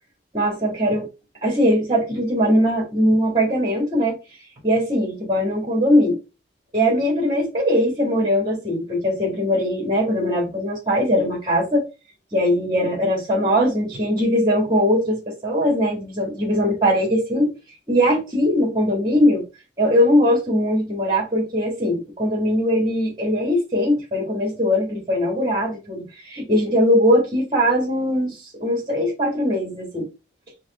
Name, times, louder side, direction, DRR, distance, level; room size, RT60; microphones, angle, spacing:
voice 1, 0.3-1.1 1.4-4.2 4.6-6.2 6.7-11.8 12.3-17.5 17.9-19.4 19.8-30.1, equal, 25° right, 1.8 m, -20 dB
4.7 x 2.6 x 4.2 m
head